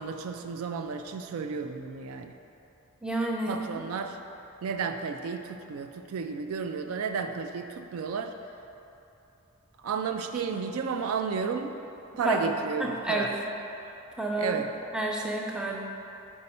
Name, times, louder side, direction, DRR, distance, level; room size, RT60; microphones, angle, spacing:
voice 1, 0.0-2.3 3.5-4.2 4.6-8.3 9.8-11.7 12.2-13.3 14.4-14.7, right 5 dB, 75° right, 7 dB, 0.3 m, -32 dB
voice 2, 3.0-3.6 12.2-12.5 12.8-13.3 14.2-14.6 14.9-15.8, right 1 dB, 5° right, -2 dB, 0.4 m, -29 dB
5.3 x 4.5 x 4.2 m, 2.9 s
head